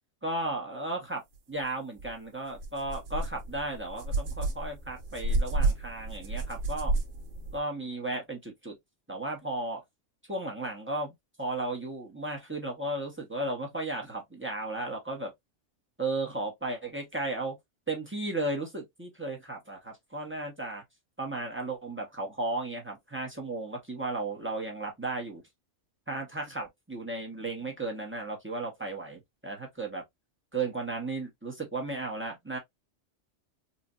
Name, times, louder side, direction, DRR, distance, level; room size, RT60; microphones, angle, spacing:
voice 1, 0.2-1.2 1.5-6.9 7.5-8.7 9.1-9.8 10.3-15.3 16.0-17.5 17.9-20.8 21.2-25.4 26.1-30.0 30.5-32.6, right 2 dB, 10° right, 1.0 m, -35 dB
sound 1, 2.0-2.1 2.5-7.6, right 2 dB, 85° right, 1.3 m, -31 dB
4.2 x 2.5 x 2.5 m
omnidirectional pair, 1.3 m